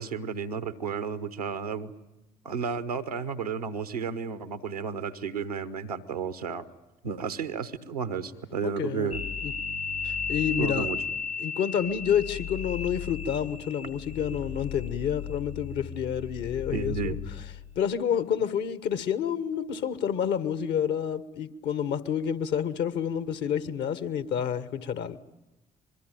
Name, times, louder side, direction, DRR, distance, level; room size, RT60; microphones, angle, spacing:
voice 1, 0.0-1.9 2.4-6.7 7.0-9.2 10.6-11.0 16.7-17.1, right 6 dB, 90° right, 1.0 m, -32 dB
voice 2, 8.6-9.5 10.0-10.9 11.4-17.2 17.7-25.2, left 8 dB, 65° left, 1.3 m, -29 dB
sound 1, 9.1-17.7, left 6 dB, 85° left, 2.5 m, -35 dB
24.5 x 22.5 x 9.3 m
figure-of-eight pair, 45°, 19 cm